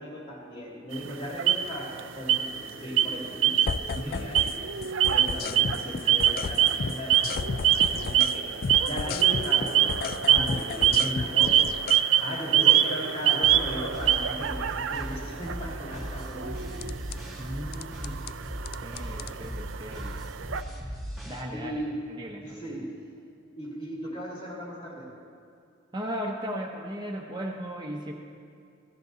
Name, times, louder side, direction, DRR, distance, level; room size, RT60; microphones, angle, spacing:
voice 1, 0.0-4.6 5.1-8.5 8.8-11.8 12.2-16.8 21.5-22.0 22.4-22.9 23.5-25.1, equal, 30° left, -3 dB, 2.6 m, -37 dB
sound 1, 0.9-2.0 2.3-2.7 3.0-3.9 4.2-20.6, right 10 dB, 80° right, 0.5 m, -25 dB
sound 2, 3.7-4.6 4.8-8.4 8.6-12.0 16.8-17.2 17.7-18.3 18.7-19.3, left 5 dB, 50° left, 0.3 m, -33 dB
voice 2, 3.9-4.3 17.4-18.2 18.8-20.2 21.2-21.8 22.1-22.8 25.9-28.1, equal, 20° right, 0 dB, 0.8 m, -36 dB
sound 3, 13.4-21.4, equal, ahead, 2.2 m, -37 dB
15.5 x 14.0 x 4.0 m, 2.5 s
head